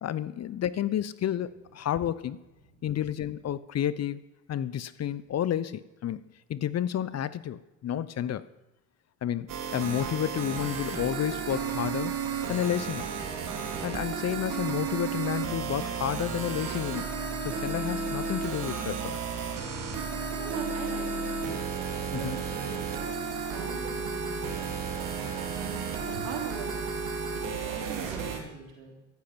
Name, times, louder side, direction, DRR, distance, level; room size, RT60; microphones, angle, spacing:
voice 1, 0.0-2.4 2.8-4.2 4.5-6.2 6.5-8.5 9.2-12.2 12.5-13.1 13.8-17.1 17.4-19.2 22.1-22.4, left 10 dB, 40° left, 18 dB, 0.8 m, -31 dB
sound 1, 9.5-28.4, right 5 dB, 55° right, 3.1 m, -33 dB
voice 2, 20.3-25.0 25.3-26.9 27.5-28.9, right 5 dB, 85° right, 1 dB, 3.6 m, -41 dB
14.0 x 12.0 x 6.0 m, 0.98 s
hypercardioid pair, 60°, 39 cm